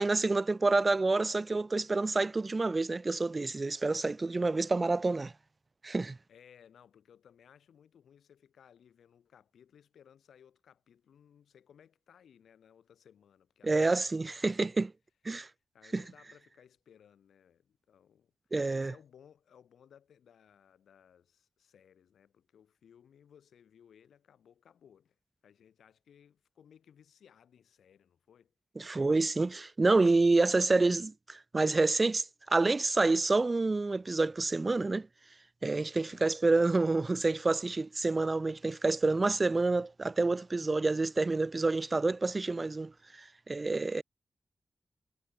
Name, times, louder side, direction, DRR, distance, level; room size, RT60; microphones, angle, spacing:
voice 1, 0.0-5.3 5.8-6.2 13.6-14.9 15.3-15.5 15.9-16.0 18.5-18.9 28.8-35.1 35.6-42.9 43.5-44.0, right 3 dB, 40° right, 0.4 m, -28 dB
voice 2, 6.3-14.8 15.7-18.3 18.7-25.2 25.4-28.5 36.1-36.3, left 8 dB, 85° left, 6.1 m, -61 dB
supercardioid pair, 45°, 0 cm